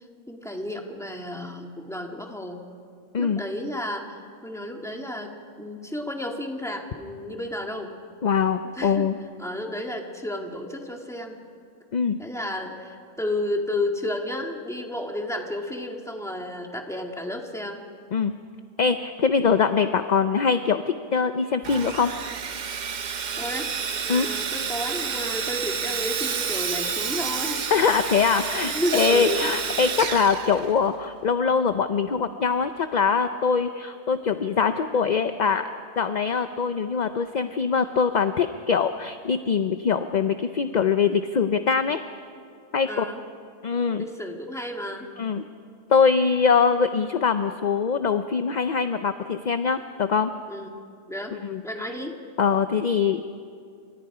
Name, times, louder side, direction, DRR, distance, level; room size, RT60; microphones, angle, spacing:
voice 1, 0.3-2.6 3.2-8.0 8.7-9.1 9.4-11.4 12.2-17.8 23.4-23.7 24.0-27.6 28.6-29.5 42.9-43.2 44.0-45.1 50.5-50.7 51.1-51.3 51.6-52.2, left 1 dB, ahead, 2 dB, 2.1 m, -32 dB
voice 2, 8.2-9.2 11.9-12.2 18.1-18.3 18.8-22.1 24.1-24.3 27.7-35.7 36.0-42.0 42.7-43.1 43.6-44.0 45.2-45.4 45.9-50.3 51.4-51.6 52.4-53.4, left 5 dB, 45° left, 9 dB, 0.7 m, -23 dB
Sawing, 21.6-31.1, right 6 dB, 45° right, 0.7 m, -30 dB
30.0 x 26.0 x 5.0 m, 2.3 s
omnidirectional pair, 1.3 m